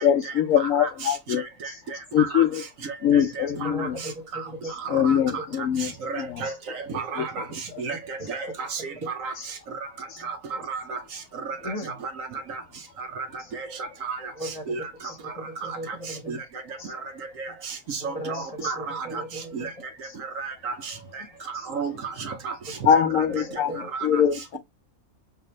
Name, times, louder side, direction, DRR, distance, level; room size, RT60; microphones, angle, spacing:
voice 1, 0.0-1.8 2.1-2.6 3.0-4.0 4.6-6.5 7.2-7.3 8.2-8.3 9.3-9.5 10.1-10.2 11.8-11.9 16.8-16.9 18.3-18.7 20.1-20.2 21.5-21.7 22.8-24.6, left 9 dB, 70° left, 1.0 m, -24 dB
voice 2, 0.6-1.1 1.6-1.7 2.2-2.4 3.4-3.9 4.3-4.4 4.8-5.2 5.8-7.4 7.8-9.3 10.2-10.4 10.7-11.0 12.5-12.6 13.2-13.3 13.5-13.7 14.0-14.2 14.7-14.8 15.7-15.8 16.3-16.4 17.4-19.2 19.5-19.7 20.4-20.9 21.7-22.5 22.9-23.0 23.9-24.2, right 5 dB, 70° right, 1.1 m, -32 dB
voice 3, 3.6-5.6 7.2-7.3 7.9-8.3 10.5-10.6 11.6-12.0 14.3-14.7 15.2-16.4 18.0-19.8 23.1-23.9, equal, 30° left, 1.1 m, -37 dB
5.8 x 2.6 x 3.1 m
omnidirectional pair, 1.5 m